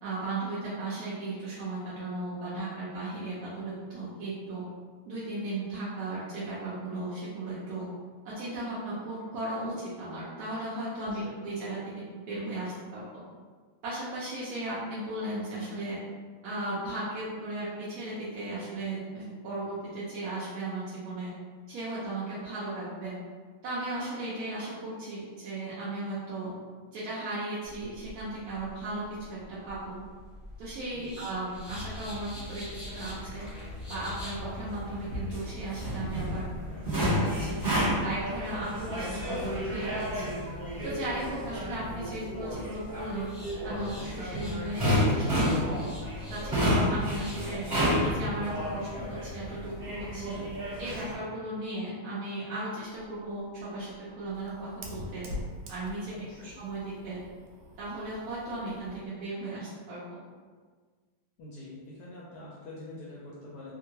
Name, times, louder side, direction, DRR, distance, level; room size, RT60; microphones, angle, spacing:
voice 1, 0.0-4.6 5.1-7.8 8.2-11.8 12.3-13.0 13.8-16.0 16.4-21.3 21.7-23.1 23.6-26.5 26.9-29.0 29.3-30.0 30.6-33.5 33.9-36.5 36.9-37.6 38.0-39.9 40.1-40.2 40.8-43.3 43.6-45.8 46.3-47.6 48.0-50.4 50.8-55.3 55.7-56.1 56.4-57.2 57.8-60.2, right 2 dB, 65° right, -9 dB, 0.9 m, -36 dB
voice 2, 11.1-11.4 30.9-31.2 50.3-50.5 56.1-56.5 61.4-63.7, left 2 dB, 70° left, -5 dB, 1.0 m, -45 dB
sound 1, 27.6-47.5, equal, ahead, 0.6 m, -48 dB
sound 2, 31.7-51.1, equal, 30° right, 1.0 m, -31 dB
Fire, 52.9-59.1, left 1 dB, 90° right, 1.4 m, -45 dB
3.5 x 2.2 x 2.8 m, 1.5 s
omnidirectional pair, 2.2 m